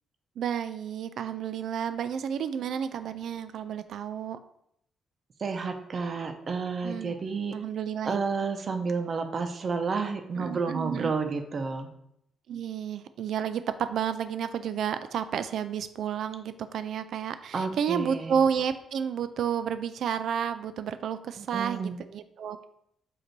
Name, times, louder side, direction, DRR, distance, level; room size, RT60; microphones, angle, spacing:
voice 1, 0.4-4.4 6.8-8.2 10.4-11.1 12.5-22.6, right 8 dB, 65° right, 11 dB, 0.3 m, -31 dB
voice 2, 5.4-7.6 8.0-11.9 17.5-18.4 21.4-22.0, right 4 dB, 40° right, 6 dB, 0.7 m, -31 dB
7.8 x 2.7 x 4.5 m, 0.72 s
cardioid pair, 145°, 0 cm